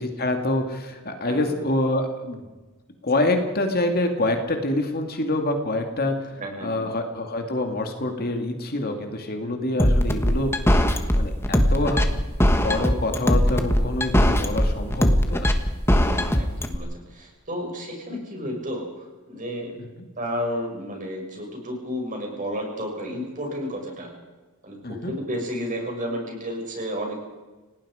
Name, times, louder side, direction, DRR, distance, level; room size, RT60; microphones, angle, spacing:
voice 1, 0.0-2.4 3.0-6.3 6.6-10.5 11.1-15.5 19.8-19.9 24.8-25.1, left 2 dB, 45° left, 4 dB, 2.3 m, -26 dB
voice 2, 1.2-1.6 6.4-6.9 9.4-9.6 16.0-19.7 20.2-24.1 24.6-27.3, equal, 35° right, 1 dB, 6.1 m, -32 dB
sound 1, 9.8-16.8, equal, 10° left, 1.5 m, -19 dB
30.0 x 18.0 x 5.0 m, 1.2 s
head